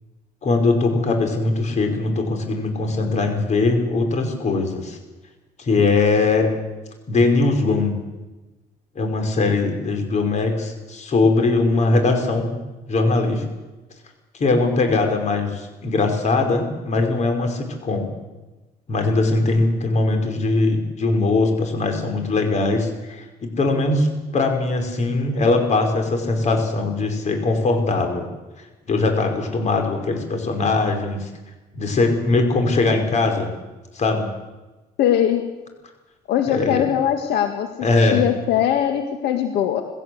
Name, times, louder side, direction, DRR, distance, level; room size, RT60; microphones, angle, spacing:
voice 1, 0.4-5.0 5.6-6.5 7.1-8.0 9.0-12.6 12.9-13.4 14.3-18.1 18.9-28.3 28.6-31.3 31.7-33.5 33.9-34.3 36.5-36.9 37.8-38.2, left 3 dB, 45° left, 4 dB, 5.3 m, -21 dB
voice 2, 35.0-35.4 36.3-37.7 38.1-39.8, left 10 dB, 80° left, 6 dB, 1.9 m, -20 dB
20.5 x 17.0 x 8.0 m, 1.1 s
cardioid pair, 110°, 17 cm